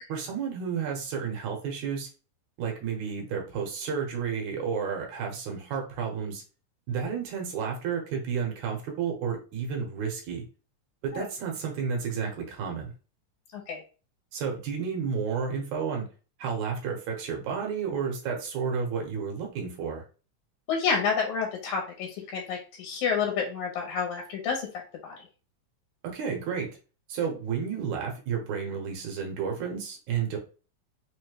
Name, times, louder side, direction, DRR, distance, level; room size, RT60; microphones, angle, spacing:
voice 1, 0.1-2.1 2.6-6.4 6.9-10.4 11.0-12.9 14.3-16.1 16.4-20.0 26.1-26.7 27.1-30.4, right 6 dB, 75° right, 1 dB, 2.4 m, -31 dB
voice 2, 20.7-24.7 25.0-25.2, left 6 dB, 80° left, 0 dB, 2.2 m, -29 dB
5.2 x 2.2 x 3.1 m, 0.35 s
omnidirectional pair, 3.5 m